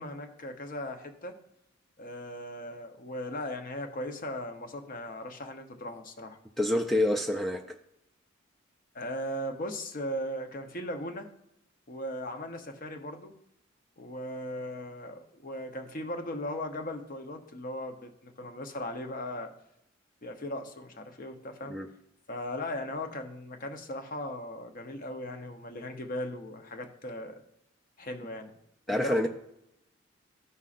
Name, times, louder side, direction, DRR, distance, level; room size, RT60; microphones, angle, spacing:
voice 1, 0.0-1.4 2.0-6.4 8.9-11.3 11.9-13.3 14.0-19.5 20.2-21.8 22.3-27.4 28.0-28.5 28.9-29.3, left 1 dB, 45° left, 5 dB, 0.8 m, -38 dB
voice 2, 6.6-7.8 21.7-21.9 28.9-29.3, left 1 dB, ahead, 2 dB, 0.3 m, -27 dB
13.5 x 5.5 x 2.5 m, 0.82 s
head